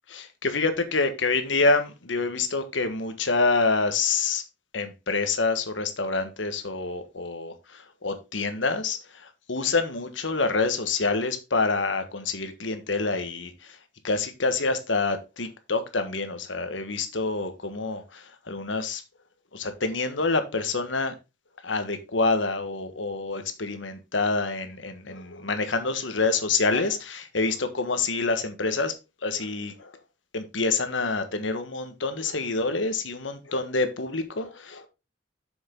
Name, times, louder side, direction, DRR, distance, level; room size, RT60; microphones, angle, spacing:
voice 1, 0.1-4.4 4.7-9.0 9.5-13.5 14.0-19.0 19.5-21.1 21.6-28.9 29.2-29.9 30.3-34.9, left 3 dB, 85° left, 1.5 m, -27 dB
7.1 x 6.7 x 3.8 m
head